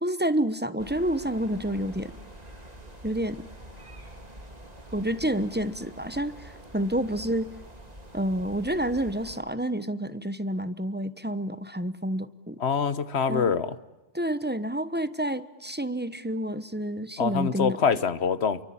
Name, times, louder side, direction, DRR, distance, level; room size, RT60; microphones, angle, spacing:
voice 1, 0.0-2.1 3.0-3.5 4.9-7.5 8.1-12.6 13.3-13.5 14.1-17.8, right 1 dB, 10° right, 13 dB, 1.0 m, -29 dB
sound 1, 0.8-9.4, right 1 dB, 35° right, 3.7 m, -46 dB
voice 2, 12.6-13.7 17.2-18.6, left 6 dB, 65° left, 15 dB, 1.4 m, -25 dB
28.0 x 24.0 x 8.8 m, 1.1 s
omnidirectional pair, 1.2 m